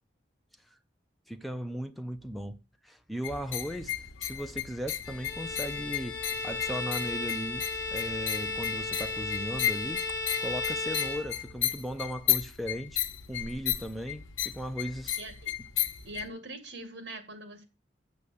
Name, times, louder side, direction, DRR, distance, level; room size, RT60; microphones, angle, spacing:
voice 1, 1.3-2.6 2.8-3.9 4.2-10.0 10.4-13.0 13.3-15.2, equal, ahead, 0.7 m, -37 dB
sound 1, 3.2-16.3, left 11 dB, 85° left, 1.0 m, -34 dB
Bowed string instrument, 5.0-11.8, left 3 dB, 25° left, 3.7 m, -35 dB
voice 2, 15.2-15.5 16.0-17.7, right 2 dB, 60° right, 2.0 m, -42 dB
7.0 x 6.7 x 6.6 m
head